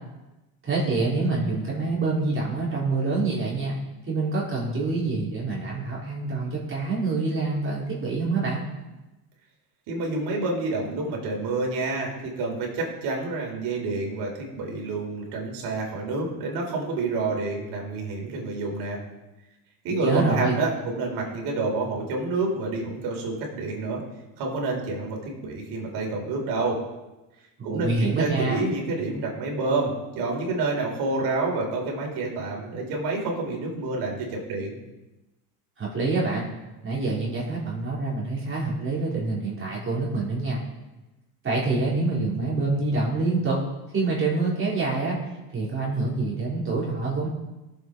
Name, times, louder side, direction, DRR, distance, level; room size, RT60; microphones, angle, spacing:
voice 1, 0.6-3.8 4.1-8.6 20.0-20.6 27.6-28.6 35.8-36.5 36.8-40.6 41.4-43.6 43.9-45.2 45.5-47.3, right 3 dB, 25° right, -6 dB, 4.1 m, -26 dB
voice 2, 9.9-19.0 19.8-24.0 24.4-26.8 27.6-34.8, right 3 dB, 55° right, -1 dB, 4.2 m, -28 dB
17.5 x 7.8 x 4.0 m, 1.0 s
hypercardioid pair, 95°, 46 cm